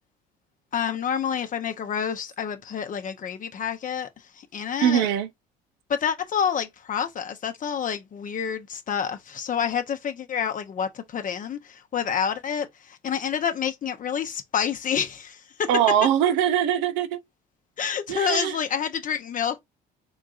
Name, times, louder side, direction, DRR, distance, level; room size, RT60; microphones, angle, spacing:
voice 1, 0.7-4.1 4.4-5.1 5.9-15.7 17.8-19.6, left 8 dB, 45° left, 0.8 m, -28 dB
voice 2, 4.8-5.3 15.7-17.2 18.1-18.6, right 10 dB, 85° right, 0.7 m, -22 dB
3.9 x 3.5 x 2.5 m
supercardioid pair, 80°, 19 cm